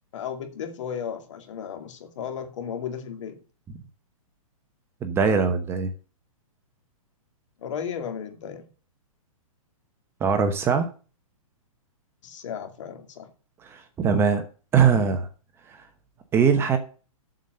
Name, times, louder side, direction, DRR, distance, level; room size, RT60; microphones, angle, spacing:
voice 1, 0.1-3.4 7.6-8.6 12.2-13.3, left 7 dB, 55° left, 2.5 m, -34 dB
voice 2, 5.0-5.9 10.2-10.9 13.6-14.4 14.7-15.3 16.3-16.8, right 6 dB, 15° right, 0.9 m, -21 dB
7.6 x 7.2 x 7.8 m
hypercardioid pair, 160°, 18 cm